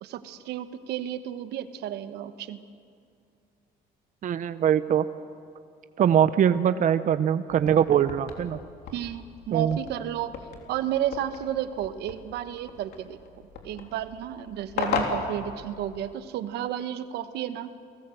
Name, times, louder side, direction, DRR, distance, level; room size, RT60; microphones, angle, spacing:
voice 1, 0.0-2.7 8.9-10.4 10.7-13.2 13.6-17.7, right 11 dB, 80° right, 11 dB, 1.2 m, -32 dB
voice 2, 4.2-5.1 6.0-8.6 9.5-9.8, right 9 dB, 50° right, 12 dB, 0.8 m, -22 dB
sound 1, 7.5-16.2, left 5 dB, 75° left, 3.3 m, -37 dB
29.5 x 18.5 x 7.8 m, 2.3 s
cardioid pair, 110°, 17 cm